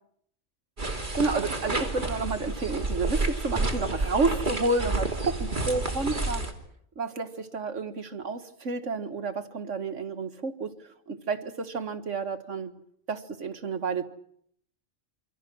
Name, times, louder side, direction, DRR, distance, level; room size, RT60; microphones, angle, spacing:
sound 1, 0.8-6.5, right 2 dB, 40° right, 3.1 m, -30 dB
voice 1, 0.9-6.4 7.0-12.8 13.1-14.1, right 3 dB, 80° right, 9 dB, 2.0 m, -30 dB
28.0 x 25.0 x 6.2 m, 0.70 s
omnidirectional pair, 1.2 m